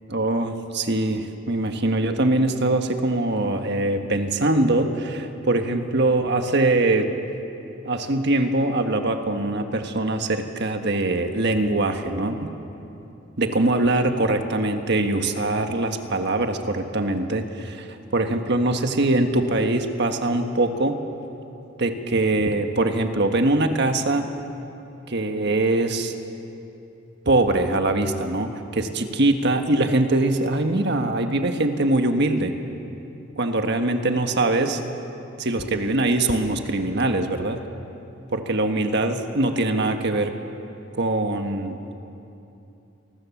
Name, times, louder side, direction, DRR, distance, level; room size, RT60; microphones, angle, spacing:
voice 1, 0.1-7.1 7.8-12.5 13.4-17.9 18.1-21.0 21.8-24.3 25.1-26.1 27.2-32.5 33.4-34.8 35.4-37.6 38.3-40.3 41.0-42.0, right 2 dB, 55° right, 6 dB, 1.5 m, -22 dB
28.0 x 20.0 x 7.2 m, 2.8 s
head